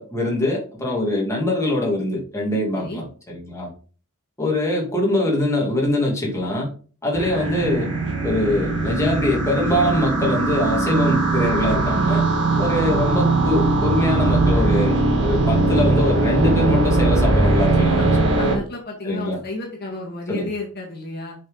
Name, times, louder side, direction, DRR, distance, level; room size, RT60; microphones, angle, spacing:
voice 1, 0.0-3.7 4.4-6.7 7.0-7.9 8.2-12.2 12.6-18.1 19.0-19.4 20.3-20.5, left 1 dB, 15° left, -3 dB, 2.4 m, -23 dB
sound 1, 7.1-18.6, right 2 dB, 55° right, 2.6 m, -20 dB
voice 2, 12.5-12.8 18.0-18.1 18.4-21.4, left 2 dB, 45° left, -1 dB, 2.1 m, -32 dB
7.4 x 5.7 x 4.0 m, 0.40 s
head